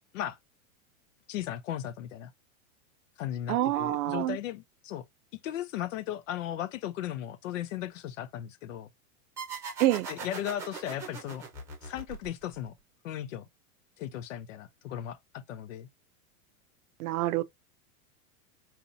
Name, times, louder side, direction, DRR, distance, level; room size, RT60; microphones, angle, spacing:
voice 1, 1.3-2.3 3.2-5.1 5.4-8.9 10.1-11.4 11.8-12.7 13.0-13.5 14.0-15.9, left 11 dB, 60° left, 0.6 m, -36 dB
voice 2, 3.5-4.4 9.8-10.1 17.0-17.4, right 14 dB, 80° right, 0.6 m, -27 dB
sound 1, 9.4-12.7, right 4 dB, 5° right, 0.9 m, -40 dB
4.1 x 2.6 x 2.6 m
supercardioid pair, 175°, 43 cm